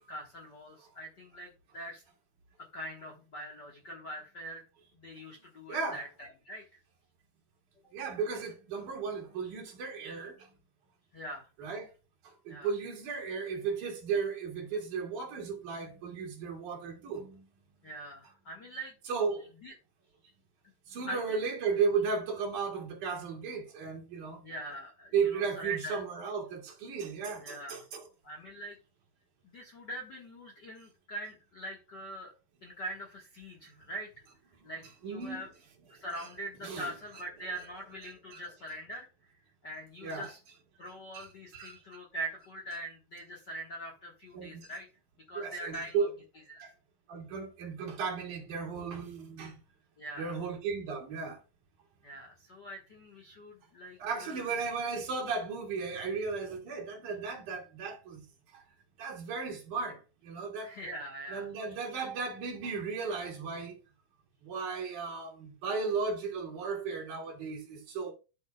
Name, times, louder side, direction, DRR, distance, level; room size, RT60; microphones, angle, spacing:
voice 1, 0.1-2.0 2.6-4.6 4.9-6.8 11.1-11.5 12.5-12.7 17.8-18.9 19.6-19.7 21.1-21.4 24.4-26.0 27.4-27.8 28.2-28.8 29.4-34.1 34.6-35.5 35.9-39.1 39.6-40.4 40.8-44.9 45.3-46.1 46.5-46.6 50.0-50.4 52.0-54.7 60.6-61.5, right 1 dB, 45° left, 1.4 m, -43 dB
voice 2, 5.7-6.0 7.9-10.4 11.6-11.9 12.2-17.4 19.1-19.5 20.9-24.4 25.1-28.1 35.0-35.5 36.2-36.3 36.6-36.9 38.3-38.4 40.0-40.3 41.1-41.3 41.5-41.8 44.3-44.5 45.4-46.1 46.6-46.7 47.1-49.6 50.2-51.4 54.0-58.2 58.5-58.6 59.0-60.0 60.2-60.7 61.3-63.8 64.4-68.1, right 5 dB, 65° right, 3.6 m, -35 dB
12.0 x 6.5 x 2.3 m
omnidirectional pair, 3.9 m